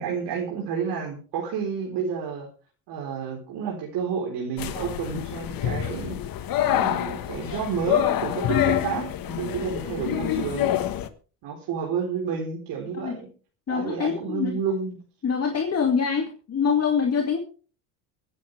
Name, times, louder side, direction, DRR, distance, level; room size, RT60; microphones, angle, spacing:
voice 1, 0.0-2.5 2.9-6.2 6.6-10.7 11.4-13.3 13.7-15.0, right 6 dB, 60° right, -1 dB, 4.1 m, -30 dB
sound 1, 4.6-11.1, left 12 dB, 50° left, 1.5 m, -27 dB
voice 2, 8.5-9.0 13.0-13.2 13.7-14.6 15.2-17.4, left 6 dB, 35° left, 2 dB, 2.3 m, -25 dB
23.5 x 9.2 x 3.4 m, 0.37 s
supercardioid pair, 100°, 45 cm